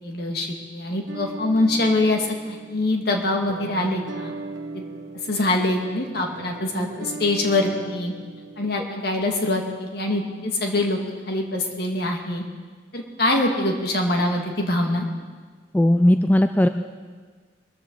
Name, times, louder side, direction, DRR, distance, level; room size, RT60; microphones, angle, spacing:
voice 1, 0.0-4.3 4.7-4.8 5.3-8.1 8.6-11.0 11.3-12.4 12.9-15.1, left 2 dB, 55° left, 2 dB, 1.9 m, -24 dB
sound 1, 1.1-8.7, right 3 dB, 85° right, 1.0 m, -38 dB
voice 2, 15.7-16.7, left 1 dB, 10° left, 8 dB, 0.3 m, -17 dB
21.5 x 13.5 x 3.9 m, 1.5 s
head